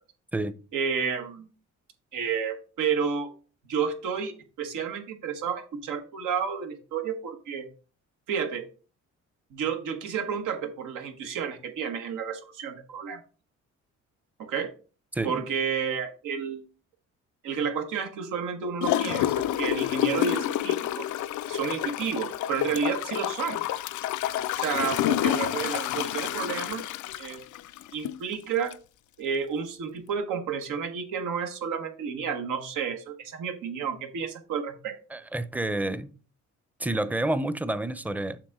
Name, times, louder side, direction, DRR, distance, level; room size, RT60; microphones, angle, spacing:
voice 1, 0.7-1.5 2.1-3.3 3.7-7.7 8.3-8.7 9.5-13.2 14.4-14.7 15.2-16.6 17.4-21.0 21.5-23.6 24.5-26.9 27.2-27.4 27.9-28.7 29.2-34.9, right 6 dB, 90° right, 1.5 m, -31 dB
voice 2, 15.1-15.4 35.1-36.1 36.8-38.4, right 1 dB, 5° right, 0.6 m, -29 dB
Gurgling / Toilet flush, 18.8-28.2 28.7-28.8, left 13 dB, 75° left, 0.5 m, -29 dB
7.4 x 5.7 x 3.6 m
cardioid pair, 90°, 30 cm